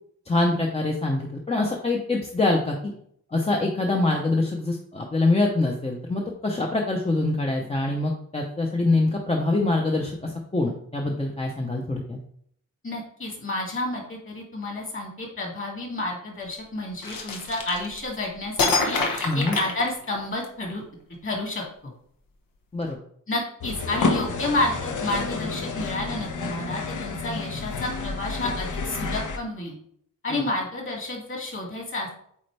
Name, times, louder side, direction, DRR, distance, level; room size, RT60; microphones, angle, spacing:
voice 1, 0.3-2.9 3.3-12.2 19.2-19.6 22.7-23.0 30.3-30.4, left 2 dB, 20° left, 0 dB, 0.6 m, -24 dB
voice 2, 12.8-20.8 21.2-21.9 23.3-29.7 30.2-32.1, left 2 dB, 40° left, -1 dB, 2.2 m, -30 dB
sound 1, 17.0-18.2 18.6-20.4, left 3 dB, 85° left, 1.2 m, -26 dB
sound 2, 23.6-29.4, left 3 dB, 65° left, 0.8 m, -30 dB
8.4 x 4.3 x 3.3 m, 0.66 s
wide cardioid pair, 175°, 33 cm